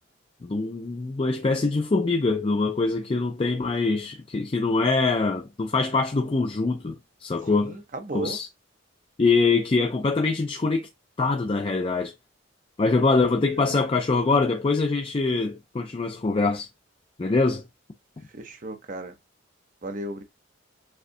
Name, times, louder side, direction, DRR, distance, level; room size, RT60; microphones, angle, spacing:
voice 1, 0.4-7.8 8.1-8.5 9.2-10.9 11.2-12.1 12.8-16.7 17.2-17.6, left 3 dB, 30° left, 0.4 m, -24 dB
voice 2, 7.5-8.4 13.6-13.8 18.3-19.1 19.8-20.2, right 2 dB, 40° right, 0.8 m, -35 dB
6.5 x 2.3 x 2.6 m
head